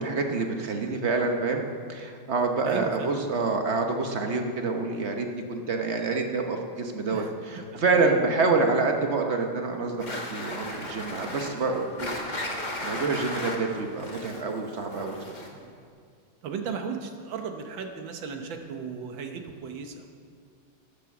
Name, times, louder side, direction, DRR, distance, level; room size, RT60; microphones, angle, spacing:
voice 1, 0.0-1.6 1.9-12.1 12.6-15.1, right 3 dB, 50° right, 3 dB, 0.8 m, -27 dB
voice 2, 2.6-3.1 7.0-7.3 7.7-8.2 15.5-15.7 16.4-20.1, right 6 dB, 70° right, 5 dB, 1.6 m, -36 dB
sound 1, 10.0-15.7, left 1 dB, 25° left, 1.4 m, -36 dB
13.0 x 8.6 x 5.9 m, 2.2 s
omnidirectional pair, 2.3 m